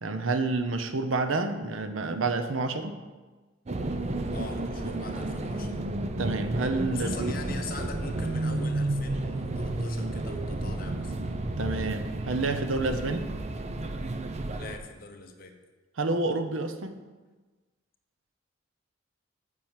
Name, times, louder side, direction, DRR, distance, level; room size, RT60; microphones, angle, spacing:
voice 1, 0.0-3.0 6.2-7.3 11.6-13.3 16.0-17.0, right 3 dB, 90° right, 9 dB, 0.8 m, -29 dB
sound 1, 3.7-14.8, right 2 dB, 35° right, 0.6 m, -32 dB
voice 2, 4.3-5.8 6.9-11.1 12.9-13.1 14.5-15.5, left 4 dB, 45° left, 4 dB, 1.1 m, -42 dB
7.5 x 6.4 x 7.4 m, 1.3 s
head